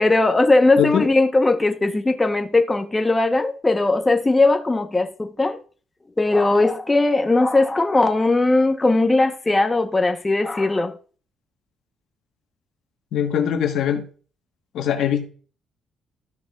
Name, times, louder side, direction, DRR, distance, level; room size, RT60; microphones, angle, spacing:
voice 1, 0.0-5.6 6.2-11.0, left 2 dB, 20° left, 0.9 m, -19 dB
voice 2, 0.8-1.1 13.1-14.0 14.7-15.3, left 9 dB, 75° left, 1.2 m, -21 dB
13.5 x 6.3 x 2.4 m
cardioid pair, 90°, 0 cm